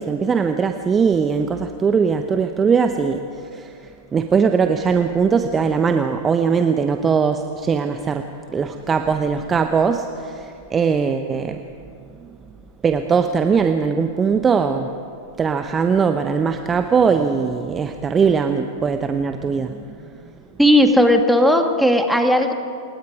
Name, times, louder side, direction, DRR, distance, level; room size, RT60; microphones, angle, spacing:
voice 1, 0.0-11.6 12.8-14.9 15.4-20.1, right 6 dB, 20° right, 7 dB, 1.0 m, -20 dB
voice 2, 20.6-22.5, equal, ahead, 4 dB, 2.2 m, -15 dB
28.0 x 21.0 x 5.0 m, 2.4 s
figure-of-eight pair, 95°, 0 cm